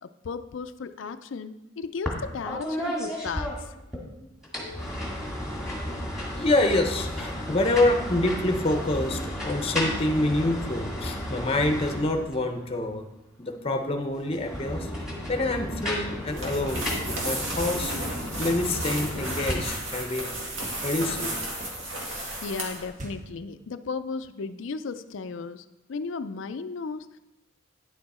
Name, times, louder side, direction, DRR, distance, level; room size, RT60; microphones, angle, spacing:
voice 1, 0.0-3.8 22.0-27.2, left 4 dB, 75° left, 10 dB, 0.5 m, -35 dB
sound 1, 2.0-2.2 2.5-4.0 4.4-12.5 14.2-19.5, equal, ahead, 1.9 m, -33 dB
voice 2, 6.4-13.1 13.4-14.9 15.3-17.9 18.4-20.3 20.8-21.3, left 2 dB, 30° left, 5 dB, 0.7 m, -26 dB
sound 2, 16.3-22.9, right 1 dB, 85° right, 2.1 m, -33 dB
sound 3, 18.4-18.8 20.5-22.0 22.9-23.4, right 1 dB, 40° right, 1.0 m, -44 dB
9.8 x 6.7 x 4.2 m, 0.98 s
head